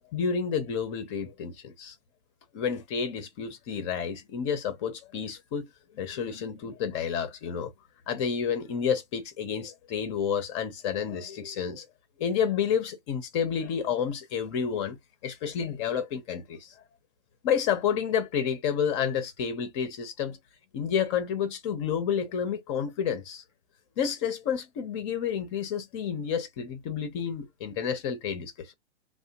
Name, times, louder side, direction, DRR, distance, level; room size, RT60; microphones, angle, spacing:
voice 1, 0.1-2.0 2.5-5.7 5.9-7.7 8.1-11.9 12.2-15.0 15.2-16.8 17.4-20.4 20.7-23.4 24.0-28.7, left 7 dB, 25° left, 0.5 m, -30 dB
2.7 x 2.0 x 2.7 m
hypercardioid pair, 125°, 35 cm